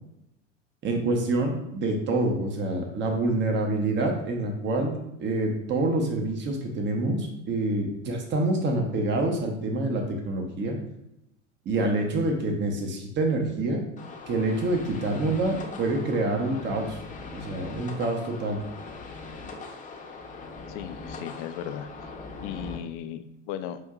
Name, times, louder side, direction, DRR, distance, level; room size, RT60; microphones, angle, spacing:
voice 1, 0.8-4.9 5.2-10.8 11.7-13.8 14.3-17.0 17.3-18.6, right 2 dB, 30° right, 2 dB, 0.8 m, -26 dB
sound 1, 14.0-22.8, left 3 dB, 20° left, 0.7 m, -41 dB
voice 2, 20.7-21.9 22.4-23.8, left 10 dB, 50° left, 10 dB, 0.4 m, -36 dB
6.0 x 2.6 x 2.4 m, 0.82 s
figure-of-eight pair, 80°, 36 cm